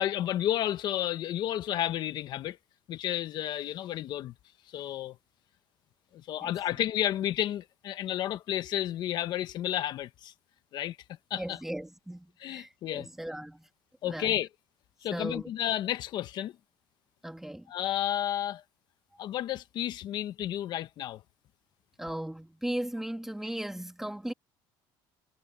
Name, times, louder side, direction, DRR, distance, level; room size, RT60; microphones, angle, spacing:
voice 1, 0.0-2.6 2.9-4.3 4.7-5.1 6.3-10.3 10.7-11.0 11.3-11.6 12.4-13.1 14.0-14.5 15.0-16.5 17.7-18.6 19.2-21.2, left 12 dB, 55° left, 1.1 m, -31 dB
voice 2, 11.3-13.7 14.0-14.3 15.1-15.5 17.2-17.7 22.0-24.3, right 1 dB, 5° right, 2.3 m, -37 dB
cardioid pair, 120°, 9 cm